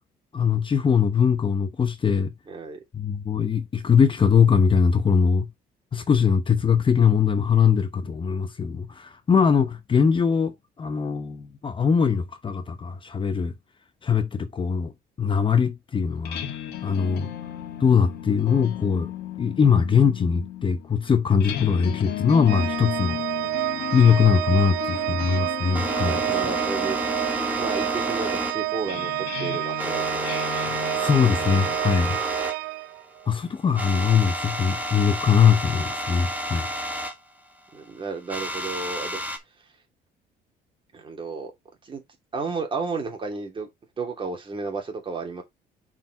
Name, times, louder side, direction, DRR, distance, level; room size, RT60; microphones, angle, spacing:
voice 1, 0.3-2.3 2.9-5.5 5.9-13.5 14.0-14.9 15.2-16.5 16.8-17.3 17.8-19.1 19.4-23.2 23.9-26.4 30.6-30.7 31.0-32.2 33.3-36.7, left 6 dB, 30° left, 0.9 m, -21 dB
voice 2, 2.5-2.8 26.0-27.0 27.3-29.1 29.4-30.4 37.7-39.2 40.9-41.5 41.8-42.0 42.3-43.7 44.0-45.4, right 4 dB, 30° right, 3.0 m, -32 dB
sound 1, 16.1-31.8, left 11 dB, 75° left, 1.8 m, -36 dB
Organ, 22.5-33.3, right 21 dB, 90° right, 0.5 m, -29 dB
sound 2, 24.6-32.6 32.8-32.9 33.3-33.4 33.7-37.1 38.3-39.4, equal, 10° right, 1.7 m, -31 dB
5.6 x 5.1 x 4.5 m
cardioid pair, 110°, 17 cm